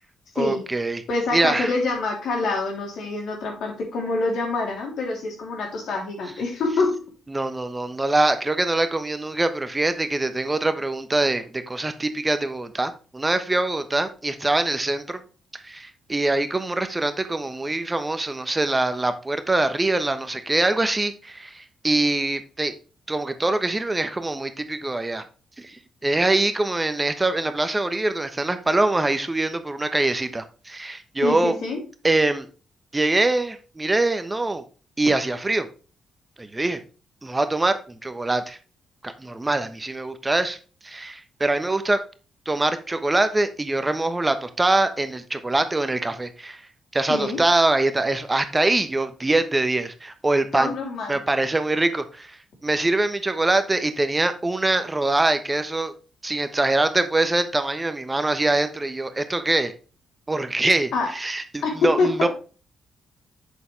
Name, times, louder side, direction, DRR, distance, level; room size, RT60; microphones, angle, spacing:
voice 1, 0.3-1.0 1.3-1.7 7.3-15.2 15.5-22.7 23.1-25.2 25.6-31.5 32.0-32.5 32.9-34.6 35.0-35.7 36.4-36.8 37.2-38.6 39.0-40.6 40.8-42.0 42.5-46.6 46.9-50.7 51.1-55.9 56.2-59.7 60.3-62.3, right 2 dB, 20° right, 10 dB, 1.1 m, -23 dB
voice 2, 1.1-7.0 31.2-31.8 47.1-47.4 50.5-51.2 60.9-61.1 61.6-62.3, left 3 dB, 65° left, 1 dB, 3.2 m, -26 dB
8.1 x 7.0 x 3.3 m, 0.35 s
hypercardioid pair, 45°, 0 cm